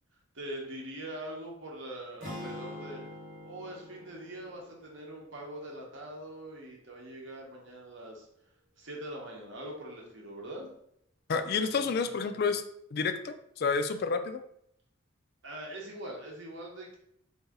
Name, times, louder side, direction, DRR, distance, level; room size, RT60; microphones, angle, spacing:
voice 1, 0.3-3.0 3.4-8.3 8.8-10.7 15.4-17.0, right 1 dB, 65° right, -1 dB, 1.0 m, -42 dB
sound 1, 2.2-6.4, left 1 dB, 40° right, 1.5 m, -46 dB
voice 2, 11.3-12.6 12.9-14.4, left 5 dB, 50° left, 9 dB, 0.4 m, -29 dB
3.9 x 2.7 x 3.6 m, 0.71 s
head